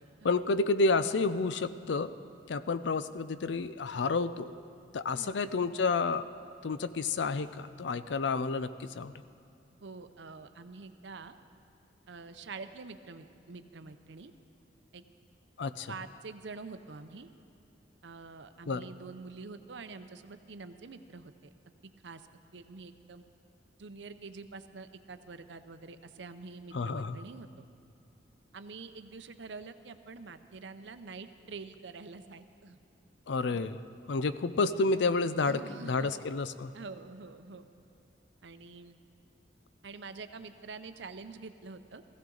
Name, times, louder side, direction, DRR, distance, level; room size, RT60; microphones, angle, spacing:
voice 1, 0.0-2.1 2.5-4.5 4.9-6.2 6.6-9.1 15.6-15.9 18.7-18.8 26.7-27.2 33.3-33.8 34.1-36.7, left 3 dB, 75° left, 14 dB, 0.5 m, -30 dB
voice 2, 9.8-11.4 12.1-14.3 14.9-15.0 15.9-17.3 18.0-21.3 22.0-22.2 22.5-23.2 23.8-27.5 28.5-32.8 33.5-33.6 35.4-36.1 36.7-37.6 38.4-39.0 39.8-42.0, right 4 dB, 70° right, 10 dB, 0.7 m, -46 dB
16.0 x 15.5 x 3.9 m, 2.6 s
head